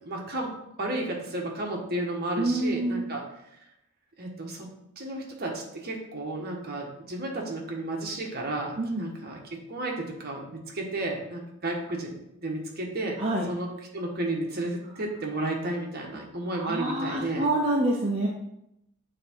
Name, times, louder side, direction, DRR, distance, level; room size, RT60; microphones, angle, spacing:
voice 1, 0.0-0.5 0.8-3.2 4.2-4.7 5.0-13.2 13.5-17.5, right 1 dB, 45° right, 0 dB, 1.4 m, -32 dB
voice 2, 2.4-3.1 8.8-9.0 13.2-13.5 16.6-18.3, right 2 dB, 25° right, -4 dB, 0.8 m, -27 dB
7.8 x 3.7 x 4.5 m, 0.81 s
head